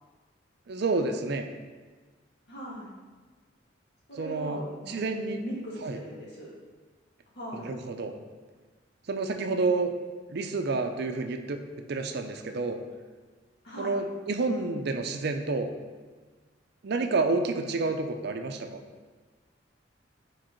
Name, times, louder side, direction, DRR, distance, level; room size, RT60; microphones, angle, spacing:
voice 1, 0.7-1.5 4.2-5.4 5.8-6.0 7.6-8.1 9.1-9.9 10.3-11.6 11.9-12.8 13.8-15.7 16.8-18.8, right 3 dB, 60° right, 6 dB, 0.5 m, -29 dB
voice 2, 2.5-2.9 4.1-5.1 5.4-6.6 7.4-7.7 13.6-14.0, equal, 60° left, -5 dB, 1.9 m, -40 dB
5.0 x 4.6 x 4.4 m, 1.4 s
head